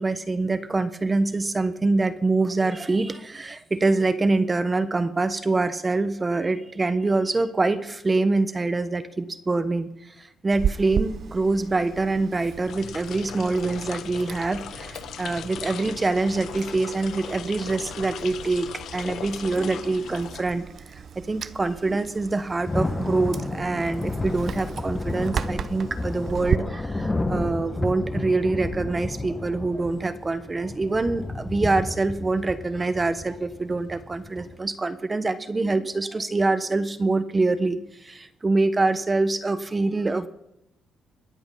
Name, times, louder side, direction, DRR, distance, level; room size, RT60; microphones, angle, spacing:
voice 1, 0.0-20.6 21.2-40.3, right 3 dB, 25° right, 11 dB, 1.1 m, -25 dB
Chewing mastication, 10.5-26.6, right 8 dB, 55° right, 0.6 m, -35 dB
sound 1, 12.5-21.0, left 9 dB, 70° left, 0.5 m, -39 dB
Thunder / Rain, 22.2-34.6, left 2 dB, 20° left, 1.2 m, -32 dB
21.5 x 7.9 x 5.6 m, 0.82 s
cardioid pair, 90°, 0 cm